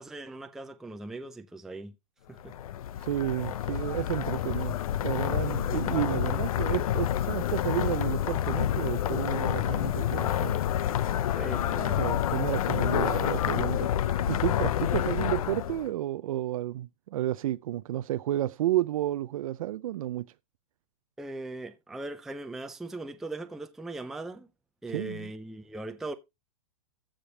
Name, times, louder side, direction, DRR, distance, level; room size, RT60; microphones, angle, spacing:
voice 1, 0.0-1.9 2.3-2.5 11.4-12.1 12.7-12.8 21.2-24.5 24.8-26.1, right 2 dB, ahead, 0.4 m, -39 dB
sound 1, 2.4-15.9, left 11 dB, 70° left, 0.6 m, -28 dB
voice 2, 3.0-4.8 5.0-10.6 12.0-13.9 14.3-20.3 24.9-25.3, right 14 dB, 70° right, 0.5 m, -31 dB
14.5 x 5.1 x 3.3 m
hypercardioid pair, 150°, 19 cm